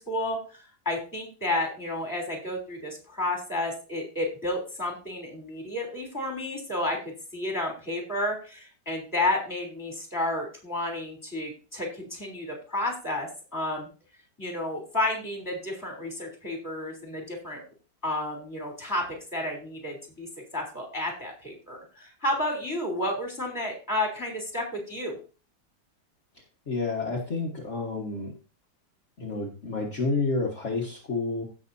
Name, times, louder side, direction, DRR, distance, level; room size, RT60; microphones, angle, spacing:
voice 1, 0.0-13.9 14.4-17.6 18.0-19.1 19.3-20.3 20.5-25.2, left 1 dB, 10° left, 0 dB, 3.4 m, -31 dB
voice 2, 26.7-28.3 29.2-31.4, left 3 dB, 40° left, -2 dB, 1.9 m, -29 dB
16.5 x 6.6 x 2.7 m, 0.34 s
omnidirectional pair, 1.9 m